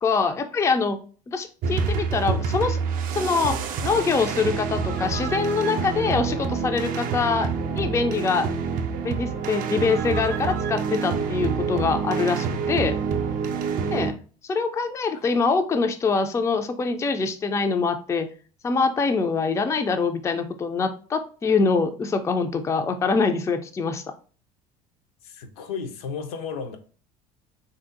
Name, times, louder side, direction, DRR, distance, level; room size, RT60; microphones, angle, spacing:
voice 1, 0.0-1.0 1.3-2.8 3.1-7.5 7.8-8.5 9.0-13.0 13.9-14.1 14.5-18.3 18.6-24.0, left 4 dB, 15° left, 0.3 m, -24 dB
sound 1, 1.6-14.1, right 5 dB, 45° right, 0.5 m, -27 dB
voice 2, 25.2-26.8, left 6 dB, 70° left, 0.6 m, -33 dB
3.6 x 2.6 x 2.5 m
figure-of-eight pair, 65°, 20 cm